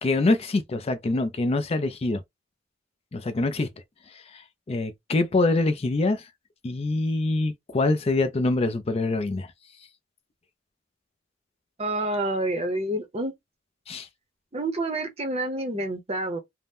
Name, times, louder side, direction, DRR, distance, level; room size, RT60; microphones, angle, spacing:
voice 1, 0.0-2.2 3.1-3.7 4.1-6.3 6.6-9.5 13.9-14.1, left 2 dB, 30° left, 0.4 m, -25 dB
voice 2, 11.8-13.3 14.5-16.4, right 1 dB, 30° right, 0.7 m, -28 dB
2.7 x 2.0 x 3.4 m
head